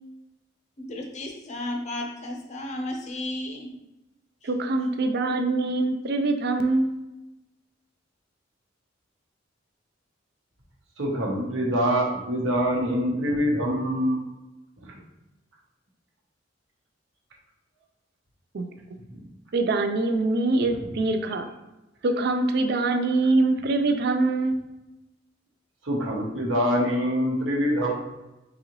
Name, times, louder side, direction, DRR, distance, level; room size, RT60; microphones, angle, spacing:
voice 1, 0.8-3.7 4.4-4.5, left 1 dB, 40° left, 2 dB, 0.7 m, -33 dB
voice 2, 4.4-6.9 18.5-18.7 19.5-21.5 22.0-24.6, right 2 dB, 60° right, 6 dB, 0.4 m, -24 dB
voice 3, 11.0-14.2 14.8-15.0 19.1-19.2 20.8-20.9 25.8-27.9, equal, 80° right, -2 dB, 1.0 m, -25 dB
4.0 x 3.7 x 3.0 m, 0.99 s
head